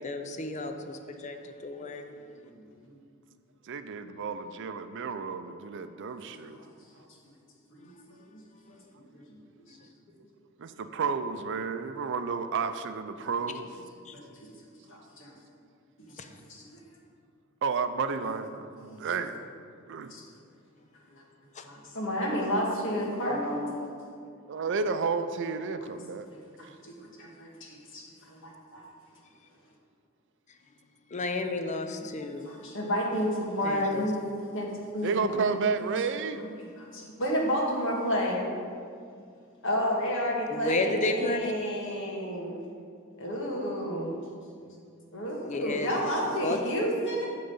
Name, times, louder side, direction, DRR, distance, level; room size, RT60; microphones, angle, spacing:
voice 1, 0.0-2.1 7.8-7.9 14.1-14.2 16.2-16.3 16.6-16.7 21.6-21.7 31.1-32.5 33.6-34.0 40.5-41.6 45.4-46.0 46.3-46.6, left 2 dB, 35° left, 6 dB, 0.5 m, -32 dB
voice 2, 1.7-3.0 6.5-6.6 8.3-8.4 8.7-9.4 9.7-9.8 14.1-14.5 14.9-15.3 16.5-16.6 18.8-19.0 20.1-20.2 21.1-21.2 21.6-23.7 26.3-28.8 32.4-34.2 34.5-34.7 34.9-35.1 35.4-36.0 36.4-38.4 39.6-42.6 43.2-44.1 45.1-47.3, equal, 60° left, -2 dB, 1.6 m, -31 dB
voice 3, 3.7-6.6 10.6-13.7 17.6-18.7 19.0-19.4 19.9-20.1 24.5-26.3 35.0-36.4, right 5 dB, 60° right, 10 dB, 0.5 m, -31 dB
8.9 x 3.8 x 7.1 m, 2.3 s
head